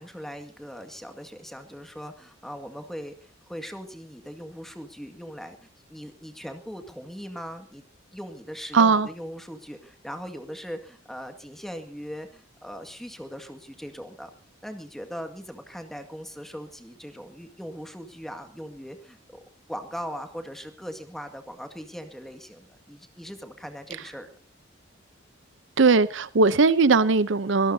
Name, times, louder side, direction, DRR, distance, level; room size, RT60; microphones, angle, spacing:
voice 1, 0.0-7.8 8.1-14.3 14.6-19.4 19.7-24.3, equal, ahead, 2.0 m, -40 dB
voice 2, 8.7-9.1 25.8-27.7, right 4 dB, 70° right, 0.7 m, -19 dB
25.5 x 17.5 x 2.8 m
head